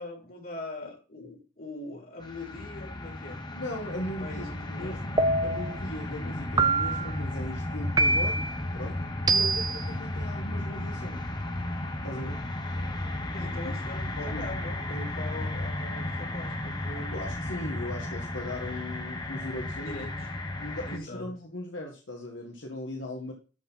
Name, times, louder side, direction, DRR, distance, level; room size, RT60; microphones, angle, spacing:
voice 1, 0.0-3.4 4.2-5.0 12.7-17.3 19.8-20.3 20.8-21.3, left 2 dB, 50° left, 3.3 m, -42 dB
sound 1, 2.2-21.0, left 1 dB, 25° left, 1.3 m, -34 dB
voice 2, 3.5-4.4 4.8-11.3 12.0-12.4 13.6-13.7 14.2-14.6 17.1-20.0 20.6-23.3, left 1 dB, 90° left, 1.8 m, -38 dB
sound 2, 5.2-5.8 6.6-7.2 8.0-8.5 9.3-9.8, right 3 dB, 20° right, 0.5 m, -25 dB
13.0 x 4.5 x 5.7 m
head